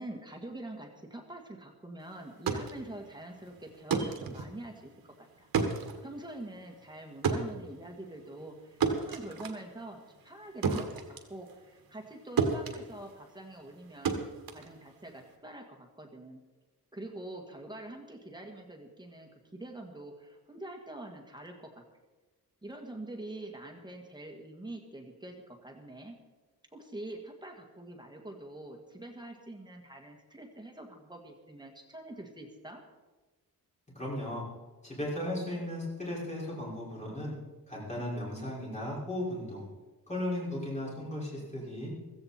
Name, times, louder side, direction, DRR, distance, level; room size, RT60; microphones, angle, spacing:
voice 1, 0.0-5.5 6.0-14.1 14.5-16.4 16.9-21.7 22.6-26.1 26.7-32.8, right 1 dB, 10° right, 2 dB, 1.7 m, -45 dB
sound 1, 2.2-12.1 12.4-15.3, right 5 dB, 70° right, 1.8 m, -34 dB
voice 2, 33.9-34.4 34.8-37.3 37.7-39.6 40.1-41.9, left 1 dB, 20° left, -5 dB, 5.4 m, -36 dB
16.0 x 15.0 x 4.3 m, 1.2 s
wide cardioid pair, 170°, 38 cm